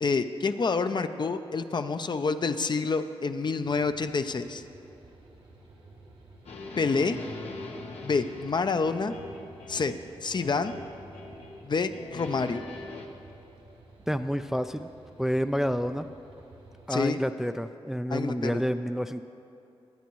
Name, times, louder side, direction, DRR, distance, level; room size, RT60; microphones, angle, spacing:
voice 1, 0.0-4.6 6.8-7.2 8.0-9.1 9.7-10.0 10.2-10.7 11.6-12.6 16.9-17.2 18.1-18.6, left 4 dB, 45° left, 9 dB, 0.5 m, -28 dB
sound 1, 3.6-16.9, right 2 dB, 85° right, 2.5 m, -53 dB
sound 2, 6.5-10.1 10.4-11.7 11.9-13.1, left 2 dB, 85° left, 1.1 m, -42 dB
voice 2, 14.1-14.9 15.2-16.1 16.9-19.2, equal, 5° right, 9 dB, 0.3 m, -29 dB
20.0 x 9.4 x 3.1 m, 2.8 s
cardioid pair, 70°, 10 cm